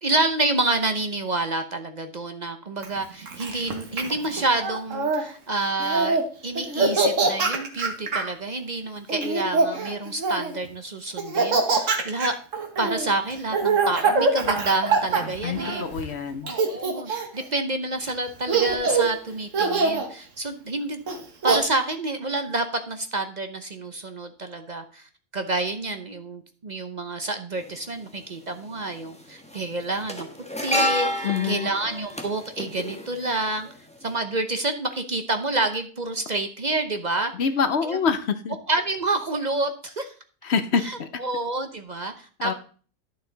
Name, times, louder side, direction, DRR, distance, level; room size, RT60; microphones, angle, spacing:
voice 1, 0.0-12.4 12.8-15.8 16.4-21.0 21.4-25.1 25.3-30.3 30.6-33.7 34.0-37.3 37.8-38.0 38.7-40.1 40.8-42.5, right 2 dB, 40° right, 7 dB, 0.8 m, -28 dB
Laughter, 2.8-5.2 5.8-6.2 6.6-8.3 9.1-10.6 11.2-16.0 16.5-17.4 18.1-18.2 18.5-19.1 19.5-20.1 21.1-21.6, right 4 dB, 80° right, 1.7 m, -24 dB
voice 2, 15.4-16.5 31.2-31.7 37.3-38.6 40.4-41.1 42.4-42.5, left 6 dB, 60° left, 10 dB, 1.0 m, -25 dB
sound 1, 27.6-27.7 28.9-29.2 29.4-33.7 34.0-34.2, equal, 5° left, 1.4 m, -29 dB
11.5 x 6.6 x 3.9 m, 0.42 s
omnidirectional pair, 1.3 m